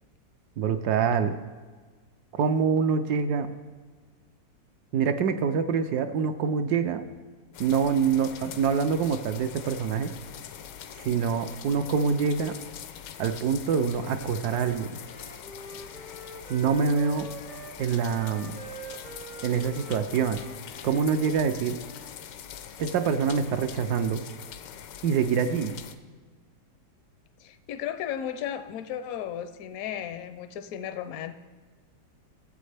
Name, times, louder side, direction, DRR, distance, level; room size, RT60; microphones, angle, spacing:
voice 1, 0.6-1.4 2.4-3.5 4.9-7.1 7.6-10.1 11.0-12.6 13.2-15.0 16.5-17.3 17.8-18.6 19.4-20.4 20.8-21.8 22.8-24.2 25.0-25.8, right 6 dB, 70° right, 9 dB, 1.0 m, -25 dB
sound 1, 7.5-25.9, left 9 dB, 85° left, 1.3 m, -43 dB
Wind instrument woodwind instrument, 13.8-22.2, right 3 dB, 35° right, 0.6 m, -45 dB
voice 2, 27.4-31.3, left 9 dB, 70° left, 9 dB, 0.9 m, -35 dB
15.5 x 7.8 x 3.3 m, 1.4 s
omnidirectional pair, 1.9 m